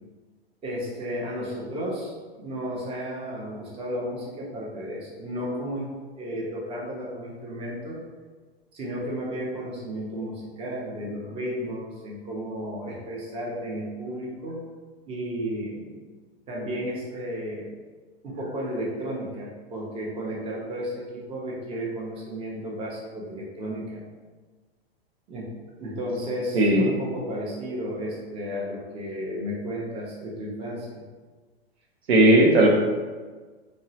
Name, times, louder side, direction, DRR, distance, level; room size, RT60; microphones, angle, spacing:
voice 1, 0.6-5.9 6.2-8.0 8.7-14.6 15.1-16.0 16.5-17.7 18.2-24.1 25.3-25.5 25.8-31.0, equal, 20° right, -4 dB, 0.6 m, -33 dB
voice 2, 32.1-32.7, right 1 dB, 80° right, 0 dB, 0.6 m, -16 dB
2.7 x 2.0 x 2.7 m, 1.4 s
hypercardioid pair, 105°, 31 cm